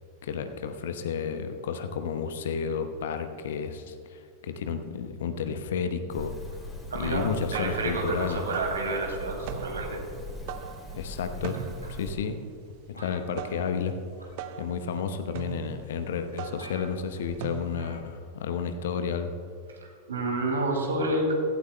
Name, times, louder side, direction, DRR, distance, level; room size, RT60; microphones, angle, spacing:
voice 1, 0.2-6.3 7.0-8.4 10.9-11.6 11.9-12.4 12.9-13.9 14.6-19.3, left 6 dB, 60° left, 8 dB, 0.9 m, -31 dB
sound 1, 6.1-12.1, left 1 dB, 5° left, 2.9 m, -41 dB
voice 2, 6.9-10.0 19.7-21.3, right 2 dB, 70° right, 1 dB, 2.6 m, -29 dB
sound 2, 7.2-18.0, right 8 dB, 50° right, 0.7 m, -41 dB
sound 3, 11.5-12.2 13.0-13.9 14.2-14.5 15.4-15.5 16.0-16.1 16.3-16.4 16.6-17.2 17.8-18.1 18.4-18.5, right 1 dB, 85° right, 2.2 m, -48 dB
16.5 x 15.5 x 2.2 m, 2.3 s
figure-of-eight pair, 90°, 0 cm